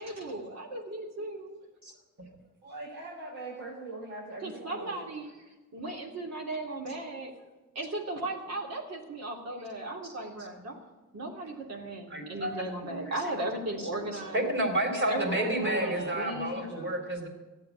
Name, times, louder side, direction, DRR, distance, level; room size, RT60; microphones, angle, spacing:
voice 1, 0.0-1.6 4.4-5.4 5.7-7.3 7.7-10.8 11.1-14.5 15.1-16.7, right 1 dB, 60° right, 0 dB, 3.1 m, -36 dB
voice 2, 2.6-5.1 14.8-16.9, right 2 dB, 80° right, -4 dB, 3.9 m, -41 dB
voice 3, 12.1-12.5 12.9-13.1 13.9-14.1 14.3-17.3, right 1 dB, 40° right, 1 dB, 4.1 m, -30 dB
14.0 x 8.8 x 9.5 m, 1.1 s
cardioid pair, 90°, 30 cm